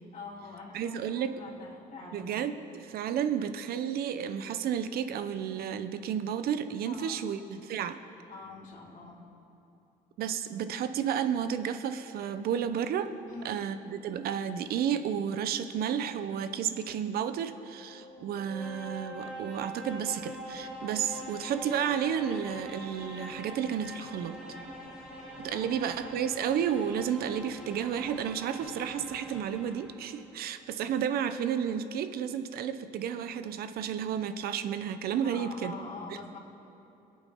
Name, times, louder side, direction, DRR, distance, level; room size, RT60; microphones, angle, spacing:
voice 1, 0.1-2.3 6.9-7.3 8.3-9.2 13.3-13.6 25.5-25.7 35.2-36.4, left 3 dB, 50° left, -4 dB, 3.5 m, -44 dB
voice 2, 0.7-1.3 2.1-8.0 10.2-13.1 13.4-24.4 25.4-35.8, right 8 dB, 70° right, 10 dB, 0.8 m, -32 dB
sound 1, 17.4-30.2, equal, 5° right, 2.4 m, -43 dB
23.0 x 8.7 x 3.7 m, 2.9 s
cardioid pair, 100°, 16 cm